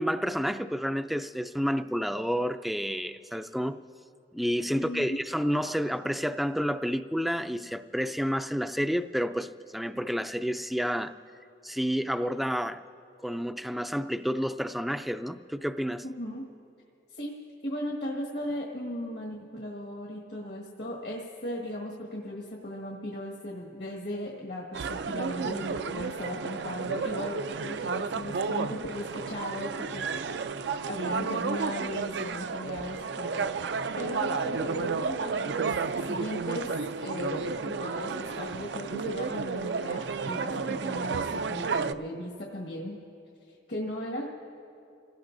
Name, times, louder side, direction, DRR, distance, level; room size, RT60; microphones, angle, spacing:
voice 1, 0.0-3.8 4.3-11.1 11.6-12.8 13.2-16.0, equal, ahead, 0.3 m, -30 dB
voice 2, 4.7-5.2 16.0-16.4 17.1-17.4 17.6-30.3 30.9-33.4 34.0-35.7 36.0-36.7 37.0-43.0 43.5-44.2, left 1 dB, 75° left, 1.6 m, -37 dB
sound 1, 24.7-41.9, right 5 dB, 75° right, 0.4 m, -32 dB
29.5 x 17.5 x 2.6 m
head